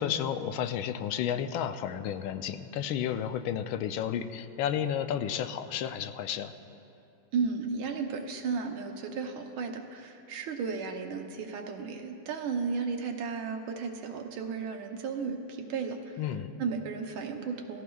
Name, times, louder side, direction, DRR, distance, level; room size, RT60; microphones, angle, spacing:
voice 1, 0.0-6.5 16.2-16.5, left 9 dB, 85° left, 9 dB, 1.4 m, -32 dB
voice 2, 7.3-16.1 16.6-17.8, right 5 dB, 85° right, 3 dB, 1.7 m, -34 dB
18.0 x 14.5 x 2.3 m, 2.7 s
omnidirectional pair, 2.2 m